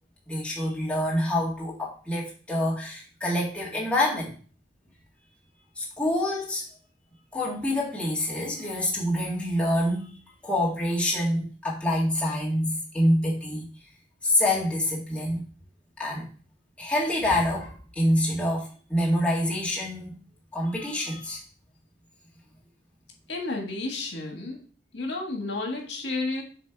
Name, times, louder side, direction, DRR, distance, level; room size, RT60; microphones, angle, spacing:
voice 1, 0.3-4.3 5.8-6.6 7.3-10.1 10.4-13.6 14.2-15.5 16.0-16.3 16.8-20.2 20.5-21.4, left 1 dB, 5° left, -6 dB, 1.8 m, -26 dB
voice 2, 23.3-24.6 24.9-26.4, left 2 dB, 75° left, 1 dB, 1.6 m, -31 dB
7.4 x 3.1 x 4.5 m, 0.39 s
head